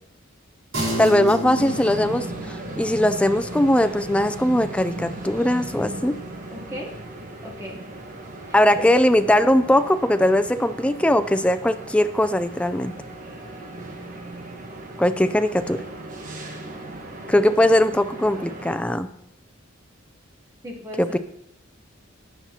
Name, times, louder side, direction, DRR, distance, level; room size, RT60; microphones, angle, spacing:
sound 1, 0.7-10.5, right 1 dB, 85° right, 4.2 m, -36 dB
voice 1, 1.0-6.2 8.5-12.9 15.0-15.8 17.3-19.1 21.0-21.2, left 1 dB, 5° left, 10 dB, 0.3 m, -20 dB
sound 2, 1.5-18.8, right 1 dB, 40° right, 1.2 m, -37 dB
voice 2, 7.4-7.8 8.5-9.0 20.6-21.0, equal, 15° right, 0 dB, 1.0 m, -36 dB
12.0 x 8.3 x 2.8 m, 0.75 s
head